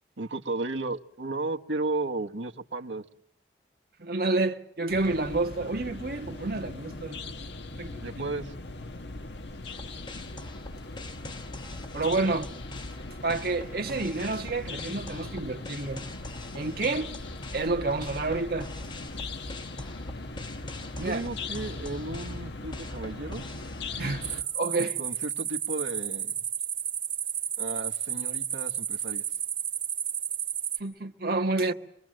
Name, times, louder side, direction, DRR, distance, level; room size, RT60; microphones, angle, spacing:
voice 1, 0.2-3.1 8.0-8.5 21.0-23.6 25.0-26.5 27.6-29.2, right 2 dB, 85° right, 1.4 m, -34 dB
voice 2, 4.0-7.2 7.8-8.3 11.9-12.5 13.2-16.0 16.5-17.1 17.5-18.7 21.0-21.2 24.0-25.0 30.8-31.7, right 3 dB, 55° right, 1.6 m, -29 dB
sound 1, 4.9-24.4, left 2 dB, 70° left, 1.4 m, -39 dB
sound 2, 9.6-24.4, left 2 dB, 25° left, 1.1 m, -45 dB
sound 3, 24.2-30.8, right 9 dB, 30° right, 2.3 m, -32 dB
25.5 x 22.5 x 7.7 m
head